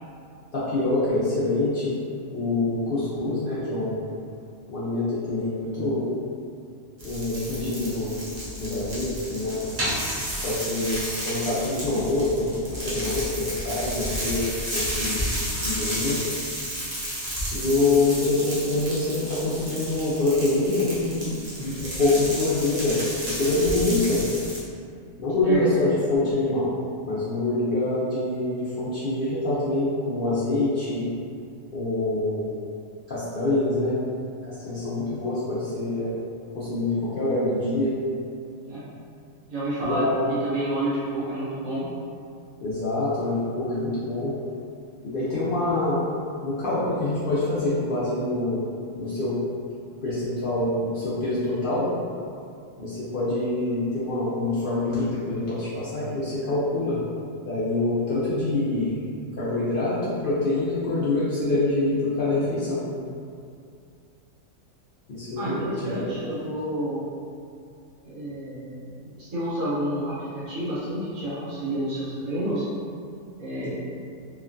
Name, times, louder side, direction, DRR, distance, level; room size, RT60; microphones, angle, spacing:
voice 1, 0.5-2.0 2.3-4.0 4.7-6.1 7.0-8.2 8.6-9.6 10.4-14.4 14.7-16.2 17.5-24.3 25.2-26.7 27.0-31.1 31.7-32.5 33.1-34.0 34.5-36.1 36.5-37.9 39.8-40.3 42.6-44.3 45.0-46.0 46.4-48.6 49.0-49.4 50.0-51.9 52.8-57.0 57.4-59.0 59.3-62.9 65.1-66.1, left 2 dB, 70° left, -11 dB, 0.5 m, -25 dB
sound 1, 7.0-24.6, equal, 40° right, 0.6 m, -32 dB
voice 2, 39.5-40.0 40.4-41.8 65.4-67.0 68.0-72.6 73.4-73.7, right 1 dB, 75° right, -11 dB, 1.4 m, -29 dB
2.9 x 2.2 x 2.4 m, 2.4 s
omnidirectional pair, 1.5 m